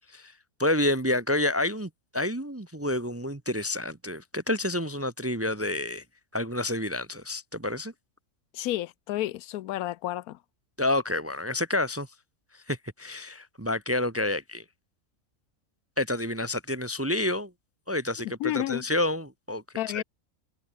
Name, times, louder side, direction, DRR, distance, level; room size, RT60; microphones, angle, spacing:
voice 1, 0.6-6.0 6.3-7.9 10.8-12.1 12.7-14.6 16.0-17.5 17.9-19.6 19.9-20.0, left 1 dB, 15° right, 0.6 m, -29 dB
voice 2, 8.5-10.4 18.4-18.8 19.8-20.0, left 14 dB, 85° left, 1.1 m, -31 dB
omnidirectional pair, 1.5 m